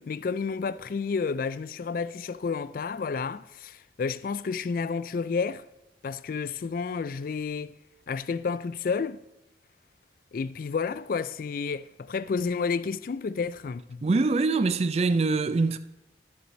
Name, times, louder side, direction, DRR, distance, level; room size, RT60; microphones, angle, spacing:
voice 1, 0.0-5.6 6.0-7.8 8.1-9.2 10.3-14.0, left 5 dB, 50° left, 0.3 m, -31 dB
voice 2, 14.0-15.8, right 3 dB, 35° right, 0.4 m, -24 dB
12.5 x 4.7 x 5.2 m
head